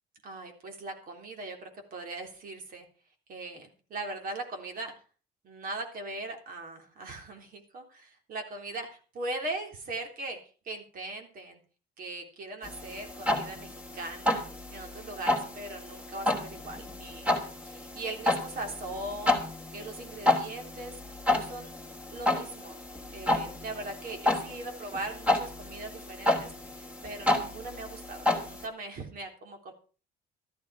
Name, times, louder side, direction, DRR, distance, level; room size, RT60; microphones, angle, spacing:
voice 1, 0.2-2.9 3.3-4.9 5.4-10.4 10.6-11.6 12.0-14.4 14.7-17.2 17.7-19.4 19.7-21.0 21.3-21.7 22.1-22.8 23.1-29.7, right 2 dB, 55° right, 4 dB, 3.6 m, -40 dB
sound 1, 12.6-28.7, left 2 dB, 10° right, 3.1 m, -31 dB
13.0 x 12.0 x 4.9 m, 0.38 s
cardioid pair, 110°, 17 cm